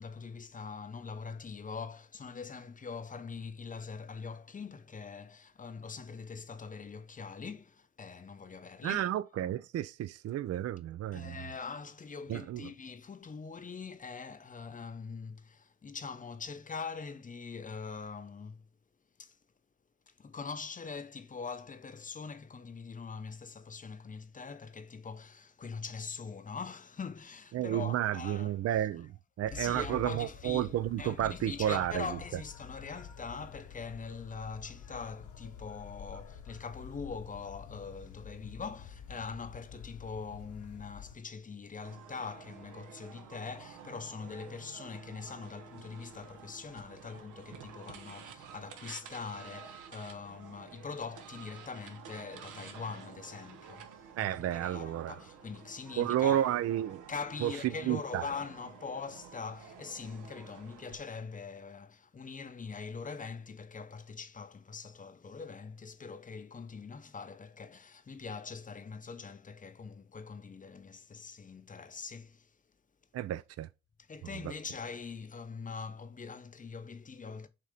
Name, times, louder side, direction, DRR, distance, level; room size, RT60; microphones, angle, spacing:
voice 1, 0.0-9.0 11.1-18.7 19.2-19.4 20.1-28.5 29.5-30.7 31.0-56.6 57.1-72.6 74.1-77.5, left 5 dB, 25° left, 0.7 m, -43 dB
voice 2, 8.8-11.4 12.3-12.7 27.5-32.4 54.2-55.2 56.0-57.0 57.4-58.3 73.1-73.7 74.4-74.5, right 12 dB, 55° right, 0.5 m, -32 dB
sound 1, 29.5-41.2, left 6 dB, 80° left, 1.4 m, -49 dB
sound 2, 41.8-61.0, right 7 dB, 85° right, 1.2 m, -51 dB
7.5 x 2.8 x 5.0 m
cardioid pair, 90°, 30 cm